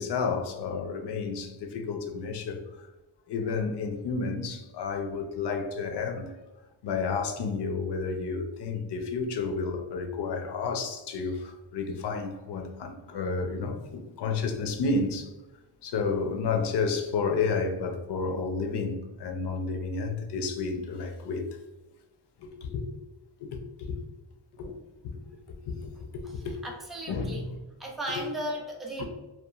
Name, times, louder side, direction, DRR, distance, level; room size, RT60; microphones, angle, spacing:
voice 1, 0.0-2.9 3.3-6.3 6.8-15.3 15.8-21.5 22.4-22.9 23.4-24.0 24.6-24.8 25.1-25.2 25.7-26.6 27.1-27.6 28.1-28.2 29.0-29.1, left 4 dB, 60° left, 0.5 m, -31 dB
voice 2, 26.2-27.5 27.8-29.0, right 1 dB, ahead, 0.4 m, -36 dB
2.9 x 2.2 x 2.2 m
cardioid pair, 115°, 47 cm